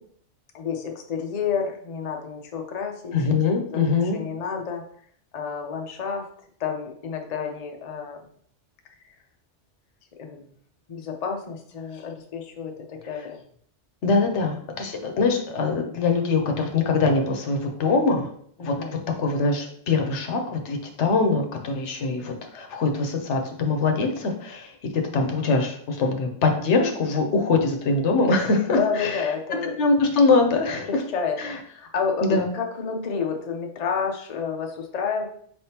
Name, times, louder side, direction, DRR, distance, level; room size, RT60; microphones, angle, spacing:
voice 1, 0.5-3.1 3.7-3.8 4.1-4.8 5.3-6.3 6.6-8.2 10.2-10.4 10.9-13.4 14.8-14.9 18.6-18.9 28.8-29.7 30.8-31.4 31.6-35.3, left 6 dB, 45° left, 2 dB, 0.6 m, -30 dB
voice 2, 3.1-4.2 14.0-18.3 18.6-29.2 29.8-31.0 31.4-31.6 32.2-32.5, left 3 dB, 75° left, 4 dB, 1.0 m, -23 dB
5.0 x 3.5 x 2.8 m, 0.62 s
omnidirectional pair, 1.2 m